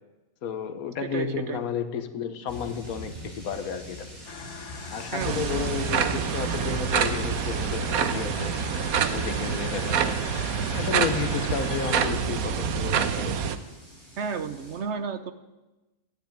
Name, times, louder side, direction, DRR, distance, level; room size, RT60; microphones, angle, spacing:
voice 1, 0.4-4.1 4.9-8.6 9.1-10.2 10.7-13.6, left 7 dB, 80° left, 1.5 m, -32 dB
voice 2, 1.0-1.6 5.1-5.4 14.2-15.3, right 6 dB, 60° right, 0.9 m, -32 dB
sound 1, 2.5-14.8, left 1 dB, 30° right, 5.1 m, -44 dB
sound 2, 4.3-12.1, left 8 dB, 60° left, 1.0 m, -41 dB
sound 3, 5.2-13.6, right 7 dB, 85° right, 1.3 m, -27 dB
13.5 x 9.9 x 8.9 m
omnidirectional pair, 1.5 m